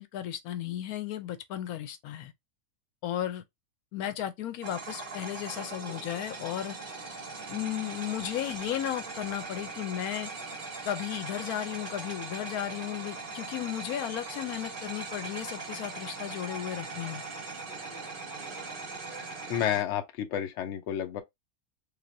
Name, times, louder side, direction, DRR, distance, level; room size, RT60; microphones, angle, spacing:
voice 1, 0.0-2.3 3.0-3.4 3.9-6.8 7.5-10.3 10.8-17.2, left 11 dB, 90° left, 1.1 m, -34 dB
sound 1, 4.6-19.8, right 3 dB, 40° right, 1.3 m, -40 dB
voice 2, 19.5-21.2, left 10 dB, 60° left, 0.9 m, -30 dB
3.3 x 2.9 x 2.5 m
omnidirectional pair, 1.5 m